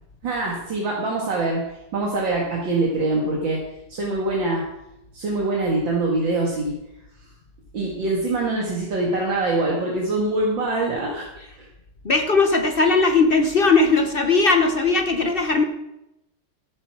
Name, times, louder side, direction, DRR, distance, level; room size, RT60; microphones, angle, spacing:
voice 1, 0.2-3.6 3.9-4.6 5.1-6.8 7.2-7.3 7.7-11.3 11.6-11.7, right 2 dB, 65° right, -2 dB, 2.6 m, -24 dB
voice 2, 12.0-15.6, left 3 dB, 45° left, 6 dB, 0.7 m, -18 dB
14.0 x 8.2 x 6.1 m, 0.88 s
omnidirectional pair, 2.3 m